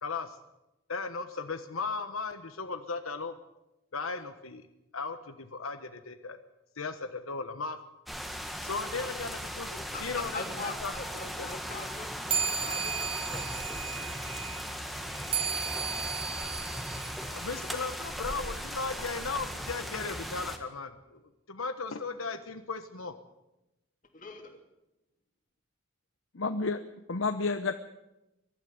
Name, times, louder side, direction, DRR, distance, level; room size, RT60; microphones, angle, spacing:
voice 1, 0.0-0.4 0.9-3.3 3.9-4.7 4.9-6.4 6.8-7.8 8.6-10.9 11.4-11.5 17.3-21.2 21.5-23.1, left 4 dB, 80° left, 8 dB, 1.2 m, -36 dB
sound 1, 8.1-20.6, equal, ahead, 1.5 m, -38 dB
voice 2, 9.9-14.4 24.1-24.5, left 3 dB, 40° left, 4 dB, 3.0 m, -43 dB
sound 2, 12.3-18.1, right 6 dB, 25° right, 1.0 m, -35 dB
voice 3, 26.3-26.8 27.1-27.7, left 3 dB, 65° left, 9 dB, 0.9 m, -30 dB
22.0 x 12.5 x 9.5 m, 0.96 s
head